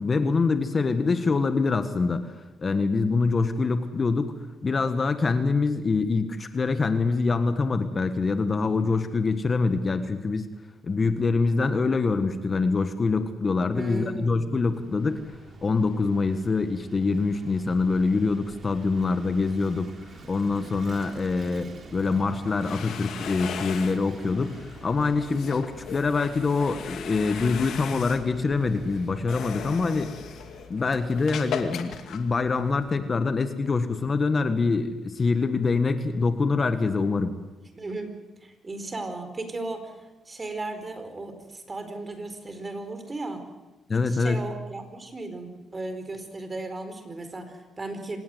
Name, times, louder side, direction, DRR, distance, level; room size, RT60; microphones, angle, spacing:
voice 1, 0.0-2.3 2.6-4.3 4.6-10.5 10.8-15.2 15.6-30.1 30.7-37.3 43.9-44.4, left 4 dB, 35° left, 9 dB, 1.6 m, -25 dB
voice 2, 13.7-14.5 37.7-39.9 40.2-43.4 43.9-48.2, right 2 dB, 25° right, 8 dB, 4.6 m, -36 dB
Vehicle / Engine, 14.4-31.0, right 3 dB, 45° right, 4.0 m, -47 dB
sound 1, 22.4-33.0, left 7 dB, 70° left, 2.4 m, -39 dB
25.5 x 19.5 x 8.0 m, 1.1 s
cardioid pair, 90°, 0 cm